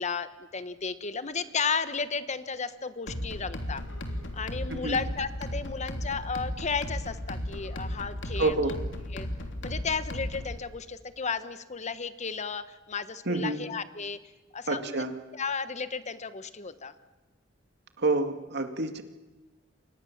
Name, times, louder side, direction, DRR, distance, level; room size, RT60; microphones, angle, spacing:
voice 1, 0.0-3.8 4.3-8.8 9.1-9.3 9.6-14.2 14.5-15.1 15.3-16.9, left 5 dB, 35° left, 12 dB, 1.1 m, -33 dB
sound 1, 3.1-10.6, left 1 dB, 70° left, 3.3 m, -35 dB
voice 2, 8.4-8.7 13.3-13.6 14.7-15.1 18.0-19.0, right 2 dB, 60° right, 7 dB, 2.3 m, -28 dB
29.5 x 25.5 x 7.3 m, 1.1 s
head